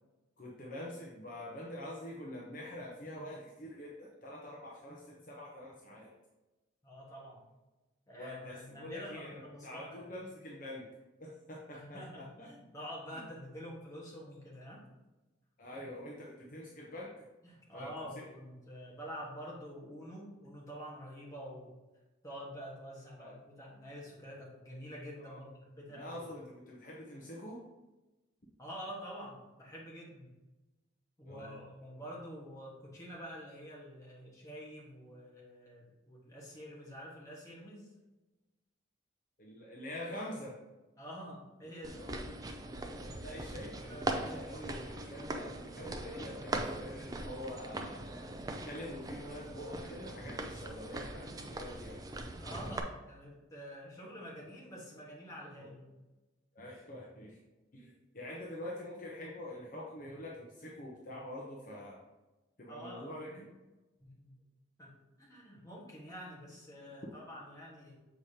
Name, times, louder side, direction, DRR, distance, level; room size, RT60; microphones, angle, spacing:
voice 1, 0.4-6.1 8.2-10.9 11.2-12.5 13.1-13.2 15.6-17.2 17.7-17.9 18.2-18.3 23.2-23.3 25.2-25.4 25.9-27.6 31.3-31.7 39.4-40.6 41.9-42.3 43.2-48.1 48.7-52.0 55.6-55.7 56.5-57.4 57.7-62.0 62.6-63.5, left 1 dB, 40° left, -3 dB, 0.8 m, -45 dB
voice 2, 6.8-7.4 8.1-10.1 11.7-14.9 17.4-21.7 22.2-26.2 28.6-30.3 31.2-37.9 41.0-42.1 43.0-44.3 52.4-56.0 62.7-63.4 64.0-64.4 64.8-68.0, equal, 15° left, -5 dB, 1.4 m, -47 dB
sound 1, 41.8-52.8, right 2 dB, 20° right, 0.4 m, -41 dB
7.0 x 5.0 x 2.8 m, 1.1 s
head